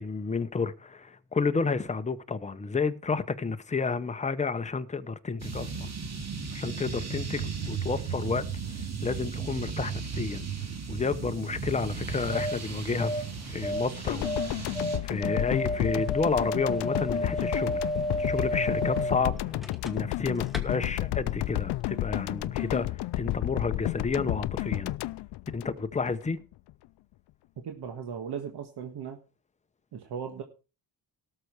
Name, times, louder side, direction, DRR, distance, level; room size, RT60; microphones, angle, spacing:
voice 1, 0.0-5.9 6.5-8.5 8.7-10.5 10.9-14.8 15.0-17.8 18.2-19.4 19.8-24.9 25.5-26.4, left 4 dB, 15° left, 0.8 m, -31 dB
sound 1, 5.4-15.0, right 5 dB, 40° right, 2.4 m, -35 dB
sound 2, 12.0-20.2 20.5-20.6, equal, ahead, 1.3 m, -32 dB
sound 3, 14.1-26.3 26.5-26.7, left 16 dB, 75° left, 0.5 m, -31 dB
voice 2, 27.6-29.2 29.9-30.4, right 7 dB, 70° right, 1.7 m, -37 dB
17.5 x 6.7 x 4.7 m
cardioid pair, 150°, 41 cm